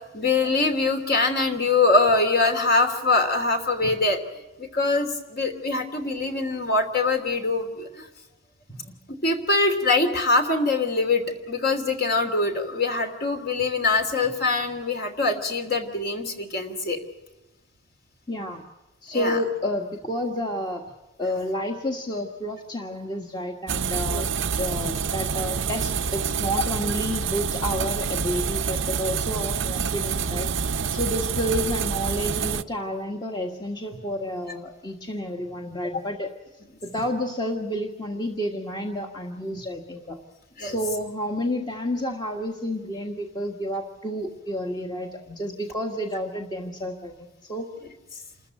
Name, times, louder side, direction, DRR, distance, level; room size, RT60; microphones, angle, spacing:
voice 1, 0.1-4.2 4.6-8.1 9.2-17.0 19.1-19.4 24.0-24.3 40.6-40.8, left 3 dB, 45° left, 5 dB, 3.1 m, -23 dB
voice 2, 18.3-18.6 19.0-20.9 21.2-36.3 36.8-40.2 40.6-47.7, equal, 20° left, 1 dB, 1.6 m, -30 dB
sound 1, 23.7-32.6, right 6 dB, 60° right, 0.7 m, -27 dB
28.0 x 14.0 x 9.0 m, 1.1 s
head